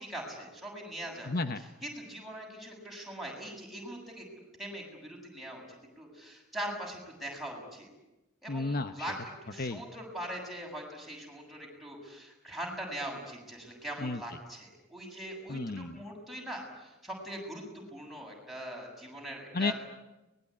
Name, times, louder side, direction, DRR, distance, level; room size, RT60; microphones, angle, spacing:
voice 1, 0.0-1.3 1.8-4.2 4.6-7.9 8.4-19.7, right 1 dB, ahead, -1 dB, 7.7 m, -41 dB
voice 2, 1.2-1.6 8.5-9.1 9.6-9.8 14.0-14.2 15.5-16.0 19.5-19.7, left 3 dB, 45° left, 9 dB, 1.0 m, -32 dB
23.5 x 21.0 x 9.9 m, 1.0 s
head